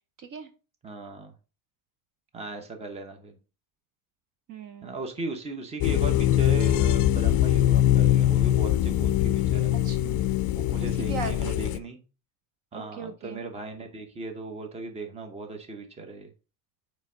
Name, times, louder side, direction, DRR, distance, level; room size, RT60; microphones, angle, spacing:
voice 1, 0.2-0.5 4.5-4.9 9.7-10.2 10.8-11.6 12.7-13.4, right 5 dB, 45° right, 0.8 m, -38 dB
voice 2, 0.8-1.3 2.3-3.4 4.8-9.7 10.5-12.0 12.7-16.3, right 3 dB, 15° right, 0.8 m, -37 dB
sound 1, 5.8-11.8, left 13 dB, 50° left, 0.4 m, -22 dB
8.8 x 3.2 x 3.6 m
cardioid pair, 155°, 42 cm